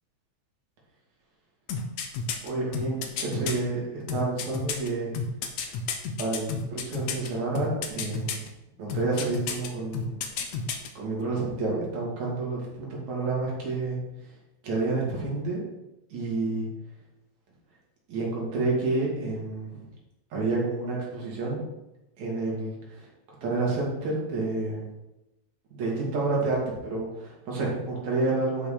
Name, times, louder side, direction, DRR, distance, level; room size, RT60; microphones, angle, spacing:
sound 1, 1.7-3.6 4.1-7.3 7.6-8.5 8.9-9.7 9.9-10.9 11.2-11.3, left 6 dB, 75° left, 2.4 m, -31 dB
voice 1, 2.4-5.1 6.2-8.5 8.8-10.2 11.0-14.0 14.6-15.6 16.1-16.7 18.1-19.8 20.3-21.6 22.2-23.1 23.4-24.8 25.7-28.7, right 3 dB, 70° right, -4 dB, 4.0 m, -29 dB
11.5 x 5.9 x 5.1 m, 0.95 s
omnidirectional pair, 3.4 m